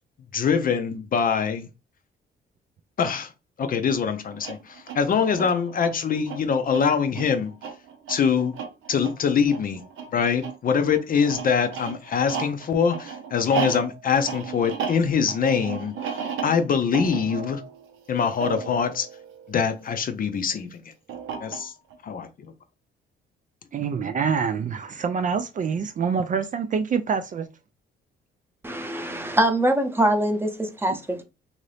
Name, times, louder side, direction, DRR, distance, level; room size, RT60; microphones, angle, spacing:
voice 1, 0.3-1.7 3.0-3.3 3.6-7.5 8.1-8.5 8.9-9.8 10.1-17.6 18.1-19.1 19.5-20.9 21.4-21.7 22.0-22.3, left 6 dB, 45° left, 0.5 m, -24 dB
sound 1, 4.3-20.1 21.1-21.9, right 7 dB, 80° right, 0.7 m, -35 dB
voice 2, 23.7-27.5, right 6 dB, 40° right, 0.4 m, -26 dB
voice 3, 28.6-31.2, right 1 dB, 10° right, 0.7 m, -23 dB
2.8 x 2.6 x 3.2 m
cardioid pair, 90°, 20 cm